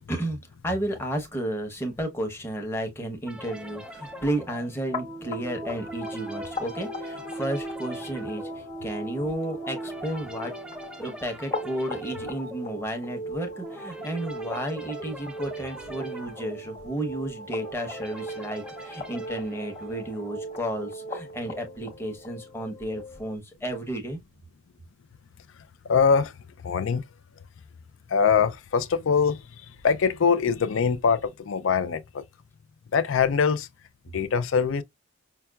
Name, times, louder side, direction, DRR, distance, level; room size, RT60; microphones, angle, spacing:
voice 1, 0.1-0.4 0.6-10.5 11.0-24.2, right 1 dB, 10° left, 0.9 m, -32 dB
sound 1, 3.2-20.4, right 1 dB, 5° right, 0.3 m, -44 dB
sound 2, 3.4-23.4, equal, 30° left, 1.1 m, -38 dB
voice 2, 25.9-26.3 26.6-27.0 28.1-29.4 29.8-32.2 32.9-33.7 34.1-34.8, left 6 dB, 75° left, 0.4 m, -23 dB
5.7 x 2.2 x 2.3 m
head